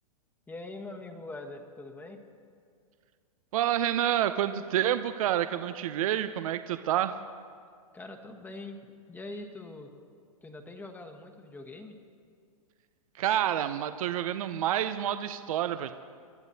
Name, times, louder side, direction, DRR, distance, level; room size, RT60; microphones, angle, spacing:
voice 1, 0.5-2.2 7.9-8.8 9.1-9.9 10.4-12.0, left 2 dB, 10° left, 4 dB, 1.2 m, -43 dB
voice 2, 3.5-7.2 13.2-15.9, right 11 dB, 65° right, 10 dB, 0.6 m, -28 dB
27.0 x 12.0 x 2.8 m, 2.2 s
hypercardioid pair, 120°, 19 cm